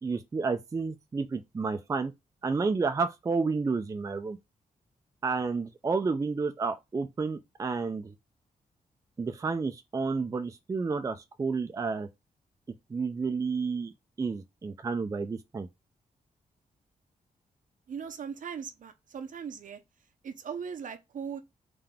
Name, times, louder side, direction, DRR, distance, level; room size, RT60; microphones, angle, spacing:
voice 1, 0.0-2.1 2.4-4.4 5.2-8.1 9.2-12.1 12.9-13.9 14.2-15.7, right 4 dB, 20° right, 0.4 m, -30 dB
voice 2, 17.9-19.8 20.2-21.4, right 7 dB, 65° right, 0.6 m, -39 dB
3.8 x 2.8 x 3.5 m
wide cardioid pair, 140°, 15 cm